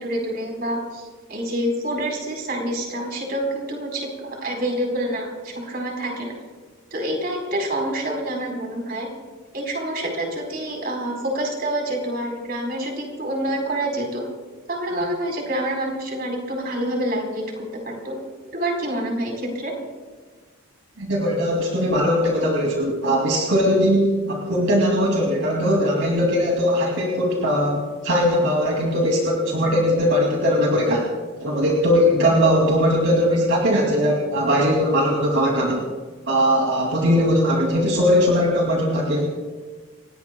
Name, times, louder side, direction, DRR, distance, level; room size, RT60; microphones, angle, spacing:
voice 1, 0.0-6.3 6.9-9.1 9.5-14.2 14.7-18.1 18.5-19.7, right 1 dB, 45° right, 1 dB, 4.4 m, -27 dB
voice 2, 21.0-31.1 31.4-35.8 36.3-39.3, equal, 70° right, -1 dB, 2.6 m, -20 dB
29.5 x 17.5 x 2.3 m, 1.4 s
head